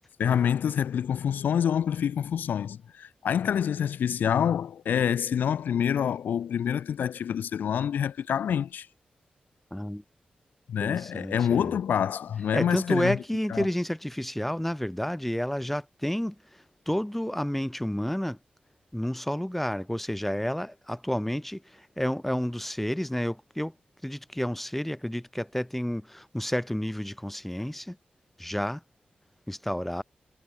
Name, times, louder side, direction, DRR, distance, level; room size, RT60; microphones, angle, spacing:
voice 1, 0.2-8.9 10.7-13.2 13.5-13.7, left 8 dB, 80° left, 0.3 m, -27 dB
voice 2, 9.7-10.0 10.8-11.7 12.5-18.4 18.9-23.7 24.0-28.0 28.4-28.8 29.5-30.0, equal, 5° left, 0.4 m, -30 dB
cardioid pair, 45°, 3 cm